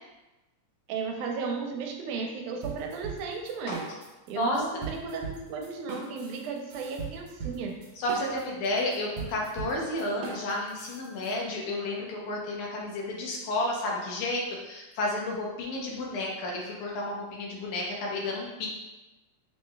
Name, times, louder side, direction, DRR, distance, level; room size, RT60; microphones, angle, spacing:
voice 1, 0.9-3.9 4.3-7.7, right 4 dB, 90° right, 1 dB, 2.1 m, -34 dB
sound 1, 2.6-4.3 4.5-11.3, right 5 dB, 70° right, 1.8 m, -39 dB
voice 2, 8.0-18.7, left 1 dB, 80° left, -2 dB, 2.3 m, -31 dB
6.1 x 2.2 x 3.2 m, 1.1 s
omnidirectional pair, 3.5 m